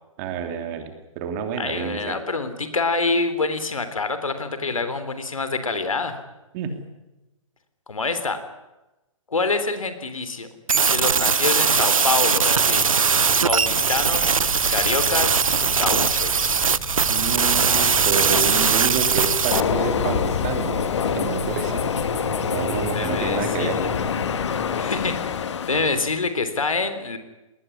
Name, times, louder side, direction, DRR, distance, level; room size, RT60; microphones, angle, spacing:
voice 1, 0.2-2.2 6.5-6.8 17.1-20.7 21.1-21.7 22.5-23.8, right 6 dB, 30° right, 6 dB, 3.2 m, -29 dB
voice 2, 1.5-6.2 7.9-8.4 9.3-10.5 10.9-12.9 13.5-14.3 14.7-16.5 22.9-23.9 24.8-25.2 25.7-27.2, left 3 dB, 75° left, 10 dB, 3.4 m, -26 dB
sound 1, 10.7-19.6, right 5 dB, 75° right, 0.9 m, -20 dB
sound 2, 12.4-25.0, right 1 dB, 15° left, 7.1 m, -36 dB
Train, 19.5-26.2, left 7 dB, 55° left, 1.7 m, -26 dB
20.0 x 20.0 x 9.8 m, 1.0 s
figure-of-eight pair, 130°, 17 cm